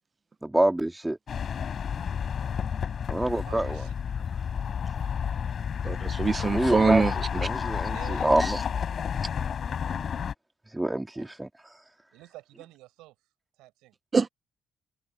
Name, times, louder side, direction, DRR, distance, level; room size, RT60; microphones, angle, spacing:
voice 1, 0.4-1.2 3.1-3.8 6.5-8.6 10.7-11.5, right 1 dB, 15° right, 3.7 m, -27 dB
sound 1, 1.3-10.3, left 7 dB, 55° left, 5.2 m, -31 dB
voice 2, 2.2-2.7 3.1-4.3 7.9-8.4 11.1-11.3 12.1-13.1 13.6-13.9, right 18 dB, 80° right, 7.7 m, -49 dB
voice 3, 5.8-7.5 14.1-14.3, right 4 dB, 40° right, 1.1 m, -24 dB
open air
hypercardioid pair, 45°, 0 cm